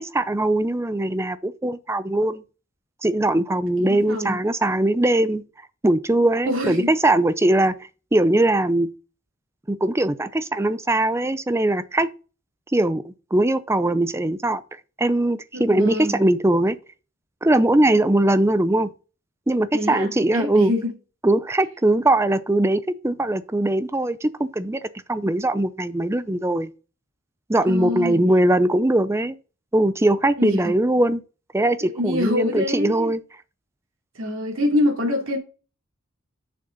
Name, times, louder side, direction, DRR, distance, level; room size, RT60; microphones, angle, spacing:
voice 1, 0.0-2.4 3.0-5.4 5.8-7.8 8.1-8.9 9.7-12.1 12.7-14.6 15.0-16.8 17.4-18.9 19.5-20.7 21.2-24.8 25.1-26.7 27.5-29.4 29.7-31.2 31.5-33.2, right 1 dB, 15° right, 0.5 m, -21 dB
voice 2, 3.9-4.4 6.4-6.9 15.5-16.2 19.7-20.9 27.7-28.2 30.4-30.6 31.8-33.1 34.1-35.4, left 1 dB, 75° right, 2.7 m, -25 dB
6.9 x 6.6 x 5.2 m
head